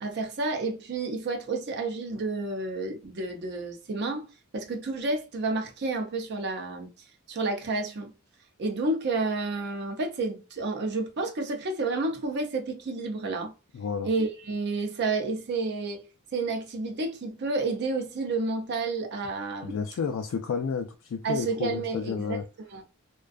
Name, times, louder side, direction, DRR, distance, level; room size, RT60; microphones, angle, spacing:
voice 1, 0.0-4.3 4.5-6.9 7.3-8.1 8.6-13.5 14.0-16.0 16.3-19.8 21.2-22.4 22.7-22.8, right 3 dB, 50° right, 0.5 m, -30 dB
voice 2, 13.7-14.1 19.6-22.4, left 6 dB, 70° left, 0.3 m, -31 dB
2.5 x 2.2 x 2.3 m
head